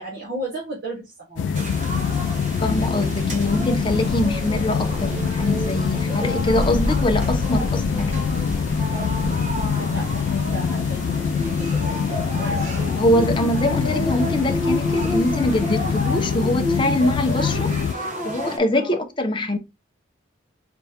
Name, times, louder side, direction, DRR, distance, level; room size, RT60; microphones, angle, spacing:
voice 1, 0.0-1.4 8.8-13.0 18.7-19.0, right 2 dB, 60° right, 1.6 m, -36 dB
sound 1, 1.4-17.9, left 6 dB, 90° left, 0.3 m, -24 dB
sound 2, 1.5-18.6, equal, 40° right, 1.1 m, -31 dB
voice 2, 2.6-8.2 13.0-19.6, left 1 dB, 25° left, 0.7 m, -23 dB
sound 3, 3.4-9.7, equal, 5° right, 1.2 m, -31 dB
4.2 x 3.5 x 2.8 m
head